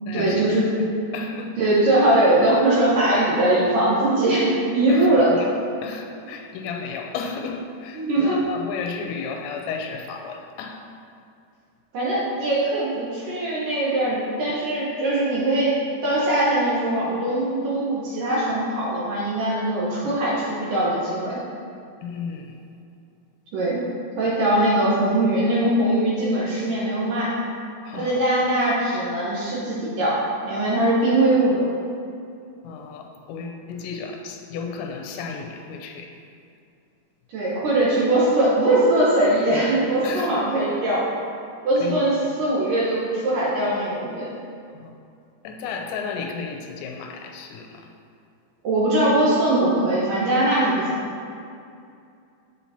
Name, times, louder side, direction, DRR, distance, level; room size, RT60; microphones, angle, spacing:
voice 1, 0.1-0.7 1.6-5.3 7.9-8.4 11.9-15.8 16.0-21.4 23.5-23.8 24.2-27.3 27.9-30.1 30.4-31.7 37.3-41.1 41.6-44.3 48.6-51.1, right 1 dB, 70° right, -7 dB, 2.1 m, -21 dB
voice 2, 1.1-1.5 4.9-5.0 5.8-10.8 22.0-22.4 27.9-28.1 32.6-36.1 40.0-40.4 41.8-42.0 45.4-47.6, left 5 dB, 90° left, 2 dB, 2.9 m, -33 dB
7.8 x 7.2 x 2.8 m, 2.4 s
omnidirectional pair, 5.2 m